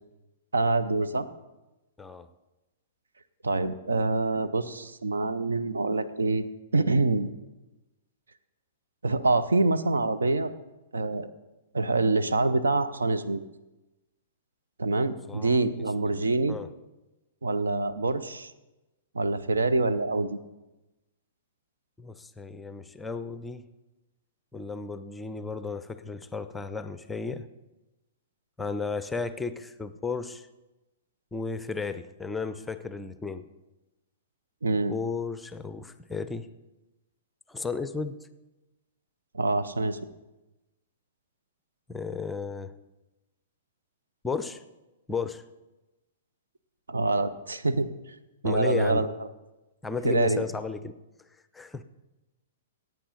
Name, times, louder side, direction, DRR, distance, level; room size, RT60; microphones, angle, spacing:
voice 1, 0.5-1.3 3.4-6.5 6.7-7.3 9.0-10.5 10.9-11.3 11.7-13.4 14.8-16.6 17.4-18.5 19.1-20.4 34.6-34.9 39.3-40.0 46.9-47.9 48.4-49.1 50.0-50.4, right 3 dB, 70° right, 12 dB, 0.7 m, -25 dB
voice 2, 15.3-15.7 16.0-16.2 16.5-16.7 22.0-23.7 24.5-27.5 28.6-30.5 31.3-33.5 34.9-36.5 37.5-38.3 41.9-42.7 44.2-44.6 45.1-45.4 48.4-49.1 49.8-50.9 51.5-51.8, left 4 dB, 10° left, 12 dB, 0.5 m, -34 dB
15.5 x 9.0 x 4.0 m, 1.0 s
figure-of-eight pair, 110°, 0 cm